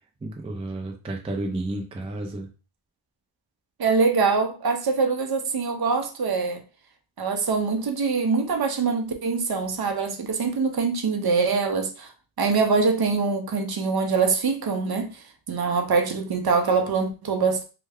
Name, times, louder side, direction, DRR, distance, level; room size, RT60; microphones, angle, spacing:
voice 1, 0.2-2.5, right 2 dB, 15° right, 0.4 m, -31 dB
voice 2, 3.8-6.6 7.2-12.1 12.4-17.6, right 4 dB, 50° right, 0.7 m, -24 dB
3.2 x 2.2 x 3.5 m
wide cardioid pair, 125°, 50 cm